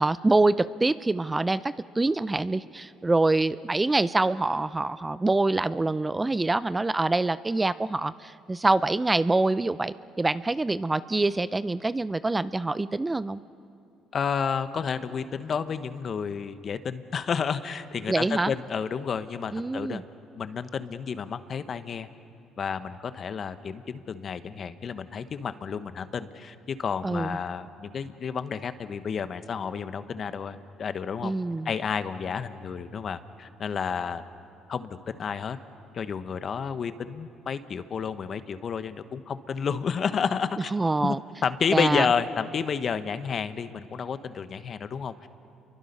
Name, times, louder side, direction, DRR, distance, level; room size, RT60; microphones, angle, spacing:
voice 1, 0.0-13.4 18.1-18.5 19.5-20.0 27.0-27.4 31.2-31.7 40.7-41.2 41.7-42.1, right 2 dB, 20° right, 16 dB, 0.5 m, -25 dB
voice 2, 14.1-20.0 20.4-22.1 22.6-31.3 31.6-34.2 34.7-35.6 35.9-40.7 41.0-41.2 41.4-45.3, left 6 dB, 50° left, 11 dB, 1.1 m, -31 dB
29.5 x 23.0 x 5.5 m, 2.6 s
supercardioid pair, 70°, 0 cm